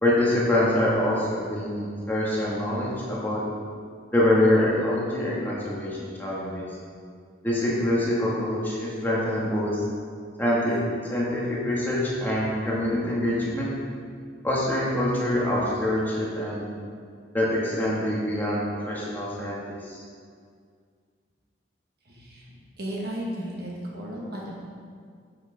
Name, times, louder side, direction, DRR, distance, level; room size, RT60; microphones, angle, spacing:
voice 1, 0.0-3.4 4.1-6.6 7.4-9.8 10.4-10.8 11.1-13.7 14.4-16.7 17.3-20.0, left 1 dB, 10° left, -6 dB, 1.6 m, -25 dB
voice 2, 22.8-24.4, equal, 50° right, -3 dB, 1.5 m, -34 dB
8.1 x 6.6 x 5.0 m, 2.1 s
head